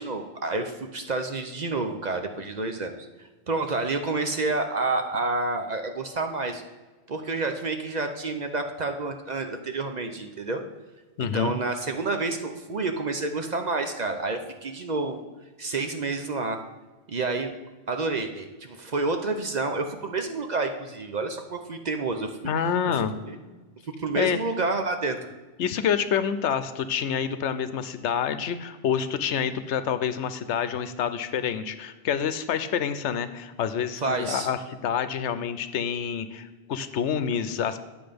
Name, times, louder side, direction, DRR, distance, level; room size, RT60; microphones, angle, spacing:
voice 1, 0.0-3.0 3.5-6.6 7.1-10.6 11.3-15.2 15.6-16.6 17.1-17.5 17.9-22.5 23.2-23.4 24.0-25.2 34.0-34.5, right 3 dB, 45° right, 6 dB, 0.7 m, -29 dB
voice 2, 11.2-11.5 22.4-23.1 24.1-24.4 25.6-37.8, left 8 dB, 80° left, 11 dB, 1.0 m, -27 dB
9.8 x 7.0 x 5.1 m, 1.3 s
omnidirectional pair, 1.2 m